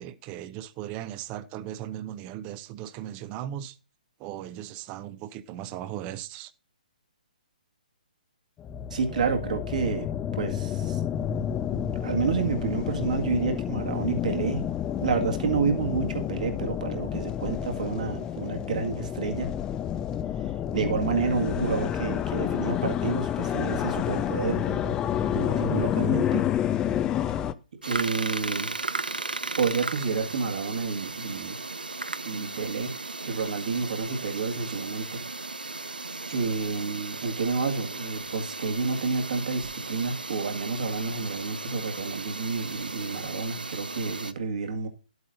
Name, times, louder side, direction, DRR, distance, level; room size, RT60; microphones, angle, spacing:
voice 1, 0.0-3.8 4.2-6.5, right 11 dB, 25° right, 0.7 m, -37 dB
sound 1, 8.6-27.5, left 9 dB, 15° left, 0.4 m, -29 dB
voice 2, 8.9-10.1 10.3-11.0 11.7-14.7 15.0-19.5 20.7-25.0 25.3-26.4 27.8-28.7 29.6-31.6 32.2-32.9 33.2-35.2 35.6-36.0 36.3-44.9, right 5 dB, 55° right, 1.9 m, -29 dB
sound 2, 27.8-44.3, right 3 dB, 85° right, 0.7 m, -36 dB
11.5 x 8.0 x 2.6 m
figure-of-eight pair, 130°, 5 cm